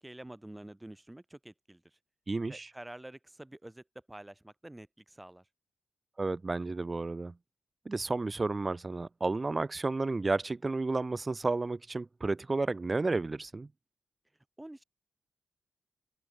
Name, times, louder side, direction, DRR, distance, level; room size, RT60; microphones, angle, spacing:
voice 1, 0.0-1.8 2.5-5.4 14.6-14.8, right 1 dB, 10° right, 3.2 m, -48 dB
voice 2, 2.3-2.7 6.2-7.3 7.9-13.7, right 3 dB, 25° right, 0.5 m, -32 dB
open air
cardioid pair, 105°, 0 cm